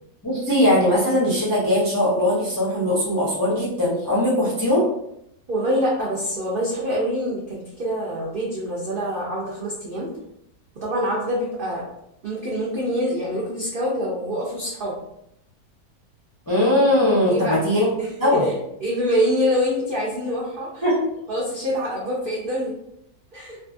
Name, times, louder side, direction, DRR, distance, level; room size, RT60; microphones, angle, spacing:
voice 1, 0.2-4.9 16.5-17.9 18.2-18.5 20.8-21.0, left 1 dB, 30° left, -7 dB, 0.4 m, -20 dB
voice 2, 5.5-10.1 10.8-11.8 12.2-14.9 17.0-20.8 21.3-22.7 23.3-23.6, equal, 70° right, -5 dB, 0.5 m, -25 dB
2.6 x 2.4 x 2.5 m, 0.78 s
omnidirectional pair, 1.6 m